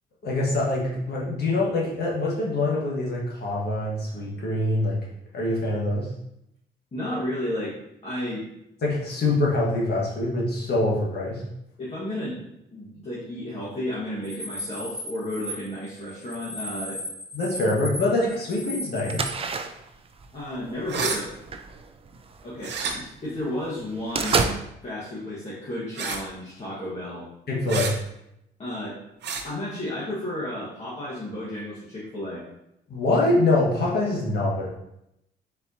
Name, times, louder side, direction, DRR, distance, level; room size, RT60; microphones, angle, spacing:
voice 1, 0.2-5.0 5.3-6.1 8.8-11.4 17.3-19.4 27.5-27.9 32.9-34.7, left 2 dB, 55° left, -4 dB, 1.5 m, -24 dB
voice 2, 6.9-7.7 8.0-8.5 11.8-12.4 12.7-17.0 20.3-21.3 22.4-24.5 24.8-27.3 28.6-29.0 29.4-32.4, left 1 dB, 35° left, -8 dB, 1.5 m, -32 dB
sound 1, 14.2-19.3, equal, 5° right, 0.7 m, -37 dB
sound 2, 19.1-22.9 23.3-23.4 23.7-24.6, right 4 dB, 30° right, 0.4 m, -29 dB
sound 3, 20.9-21.2 22.6-22.9 24.2-24.5 26.0-26.3 27.7-27.9 29.2-29.4, right 5 dB, 60° right, 0.7 m, -29 dB
4.4 x 4.0 x 2.8 m, 0.82 s
cardioid pair, 90°, 20 cm